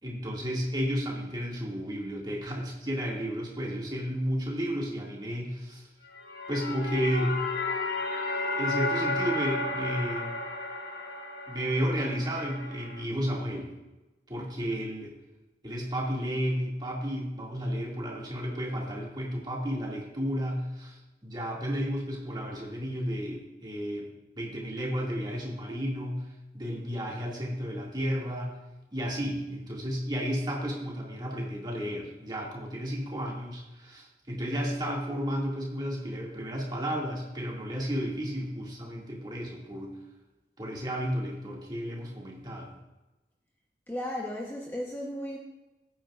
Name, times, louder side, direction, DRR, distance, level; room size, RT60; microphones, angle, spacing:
voice 1, 0.0-5.9 6.5-7.4 8.6-10.3 11.5-13.7 14.3-15.1 15.6-24.1 24.4-26.2 26.5-28.6 28.9-40.0 40.6-42.7, equal, 25° right, -3 dB, 2.2 m, -32 dB
sound 1, 6.1-13.0, left 2 dB, 60° left, 1.4 m, -33 dB
voice 2, 43.9-45.4, left 1 dB, 10° left, -2 dB, 1.0 m, -35 dB
16.5 x 9.3 x 2.5 m, 1.1 s
head